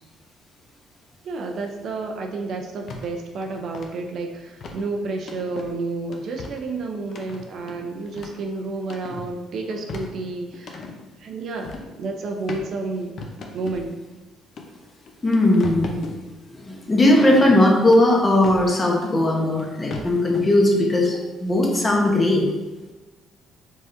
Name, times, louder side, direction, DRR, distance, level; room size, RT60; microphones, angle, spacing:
voice 1, 1.2-10.9 11.2-13.1 13.5-14.0, right 3 dB, 55° right, 3 dB, 0.5 m, -30 dB
sound 1, 2.9-3.1 3.4-3.9 4.6-4.8 5.3-5.7 6.1-6.6 7.1-8.4 8.8-9.3 9.7-11.0 11.6-11.9 12.5-12.6 13.2-13.9 14.6-14.7 15.1-16.2 17.9-18.7 19.6-19.7 19.9-20.4, left 3 dB, 50° left, 0.6 m, -36 dB
voice 2, 15.2-16.0 16.5-22.4, left 1 dB, 20° left, 0 dB, 0.9 m, -18 dB
4.8 x 3.9 x 2.6 m, 1.1 s
cardioid pair, 120°, 0 cm